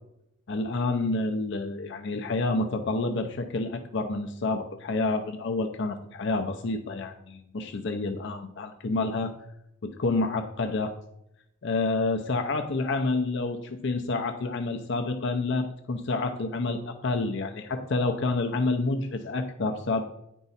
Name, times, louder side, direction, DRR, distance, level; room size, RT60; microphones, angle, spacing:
voice 1, 0.5-9.3 9.8-10.9 11.6-20.0, left 3 dB, 65° left, 6 dB, 0.6 m, -28 dB
9.9 x 4.6 x 4.1 m, 0.81 s
head